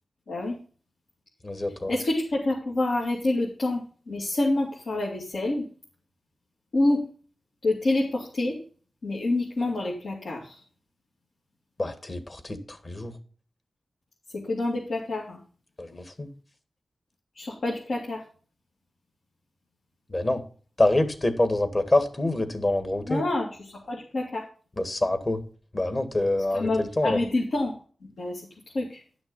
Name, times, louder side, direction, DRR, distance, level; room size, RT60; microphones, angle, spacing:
voice 1, 0.3-0.6 1.9-5.7 6.7-7.1 7.6-8.6 9.0-10.6 14.3-15.4 17.4-18.2 23.1-24.4 26.5-27.7 28.2-28.5 28.7-29.0, left 2 dB, 80° left, -4 dB, 2.5 m, -27 dB
voice 2, 1.4-1.9 11.8-13.2 15.8-16.3 20.1-20.4 20.8-23.2 24.8-25.4 25.7-27.2, left 1 dB, 35° left, 9 dB, 1.7 m, -26 dB
11.0 x 6.2 x 5.4 m, 0.40 s
wide cardioid pair, 80°, 0 cm